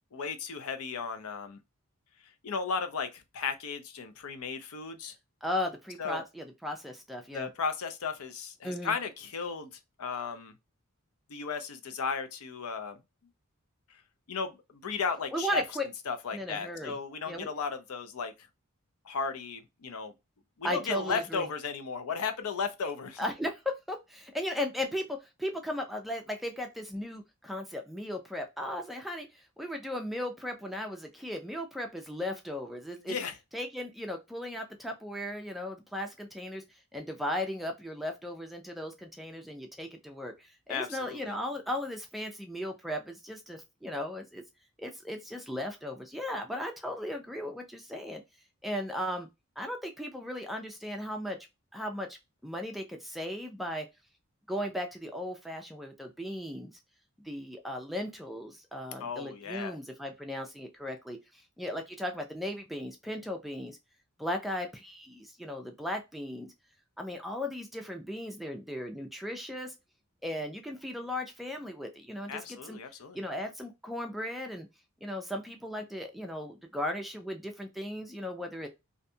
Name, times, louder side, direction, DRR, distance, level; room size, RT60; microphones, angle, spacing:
voice 1, 0.1-1.6 2.4-5.1 6.0-6.2 7.3-9.7 10.0-10.5 11.3-13.0 13.9-14.0 14.3-15.6 16.1-18.3 19.0-20.1 20.6-23.2 33.0-33.4 40.7-41.3 59.0-59.8 72.3-73.2, left 5 dB, 75° left, 0.5 m, -35 dB
voice 2, 5.4-7.5 8.6-9.0 15.3-15.8 16.3-17.0 17.3-17.5 20.6-21.5 23.2-33.2 33.5-44.4 44.8-48.2 48.6-49.3 49.6-51.4 51.7-52.2 52.4-53.9 54.5-56.7 57.2-63.8 64.2-66.5 67.0-69.7 70.2-72.8 73.1-74.7 75.0-78.7, left 1 dB, ahead, 0.3 m, -36 dB
2.5 x 2.2 x 2.6 m
head